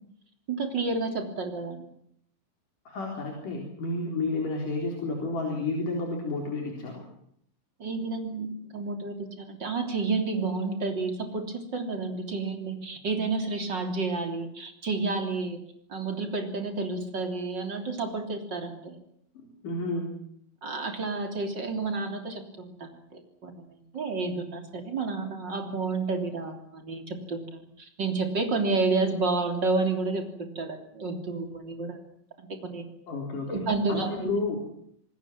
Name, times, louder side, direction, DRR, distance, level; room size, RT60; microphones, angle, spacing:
voice 1, 0.5-1.9 7.8-15.6 15.9-19.0 20.6-32.0 32.4-32.9 33.5-34.3, right 3 dB, 25° right, 5 dB, 2.9 m, -30 dB
voice 2, 2.8-7.0 19.3-20.1 33.1-33.6 33.9-34.7, left 2 dB, 45° left, 1 dB, 5.1 m, -31 dB
27.0 x 20.5 x 7.4 m, 0.70 s
omnidirectional pair, 5.8 m